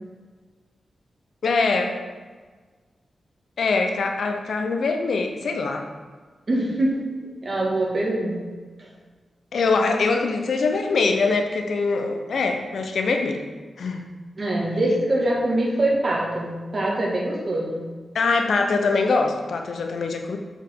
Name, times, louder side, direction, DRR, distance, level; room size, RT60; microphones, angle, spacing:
voice 1, 1.4-2.0 3.6-5.8 9.5-13.4 13.8-14.1 18.1-20.4, left 4 dB, 75° left, 4 dB, 0.7 m, -23 dB
voice 2, 6.5-7.1 7.4-8.4 8.8-8.9 14.4-17.8, right 1 dB, 45° right, -3 dB, 1.9 m, -24 dB
7.2 x 5.2 x 3.7 m, 1.4 s
cardioid pair, 75°, 0 cm